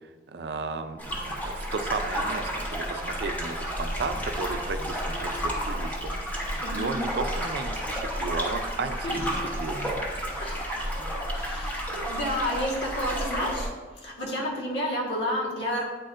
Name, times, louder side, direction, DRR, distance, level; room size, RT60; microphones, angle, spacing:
voice 1, 0.3-10.1, right 4 dB, 65° right, 9 dB, 0.4 m, -35 dB
sound 1, 1.0-13.7, equal, 10° left, 1.1 m, -31 dB
voice 2, 6.6-7.0 9.0-9.2 10.4-10.5 11.4-11.8 12.1-13.7 14.0-15.8, equal, 80° left, -3 dB, 1.4 m, -30 dB
9.1 x 4.3 x 2.5 m, 1.4 s
head